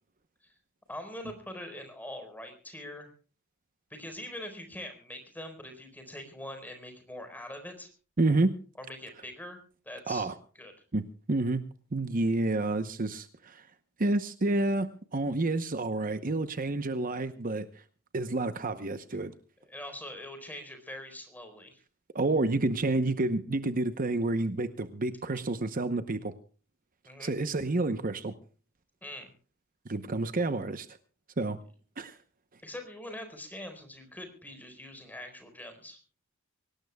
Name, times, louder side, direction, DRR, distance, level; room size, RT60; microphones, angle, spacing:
voice 1, 0.9-3.1 3.9-7.9 8.8-9.6 9.8-10.3 10.5-10.7 19.7-21.8 27.0-27.3 29.0-29.3 32.6-36.0, left 1 dB, 10° left, 6 dB, 4.4 m, -43 dB
voice 2, 8.2-8.5 10.1-10.3 10.9-11.6 11.9-13.7 14.0-17.7 18.1-19.3 22.1-26.3 27.2-28.3 29.9-30.9 31.4-31.6 32.0-32.2, right 2 dB, 40° right, 10 dB, 0.9 m, -29 dB
24.5 x 18.5 x 2.3 m, 0.38 s
head